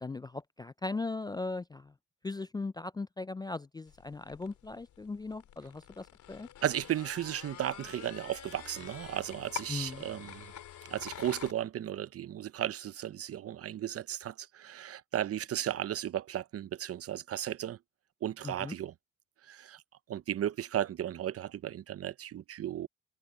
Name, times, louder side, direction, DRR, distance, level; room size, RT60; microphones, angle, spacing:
voice 1, 0.0-1.9 2.2-6.5 9.7-10.0 18.4-18.7, left 3 dB, 15° left, 0.3 m, -38 dB
sound 1, 3.9-11.5, left 10 dB, 75° left, 3.6 m, -47 dB
voice 2, 6.6-10.5 10.9-17.8 18.2-18.9 19.5-19.8 20.1-22.9, right 11 dB, 50° right, 0.6 m, -35 dB
cardioid pair, 90°, 30 cm